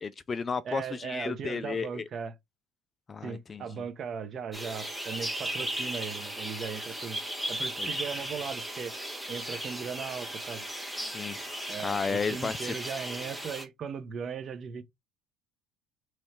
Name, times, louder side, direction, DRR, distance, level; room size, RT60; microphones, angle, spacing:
voice 1, 0.0-2.0 3.1-3.8 7.8-7.9 11.0-11.5 11.8-12.7, left 5 dB, 25° left, 0.3 m, -33 dB
voice 2, 0.6-2.3 3.2-7.2 7.5-8.9 9.3-10.7 11.7-14.8, right 6 dB, 40° right, 0.8 m, -38 dB
sound 1, 4.5-13.6, right 1 dB, ahead, 1.3 m, -36 dB
3.1 x 3.1 x 4.3 m
cardioid pair, 125°, 0 cm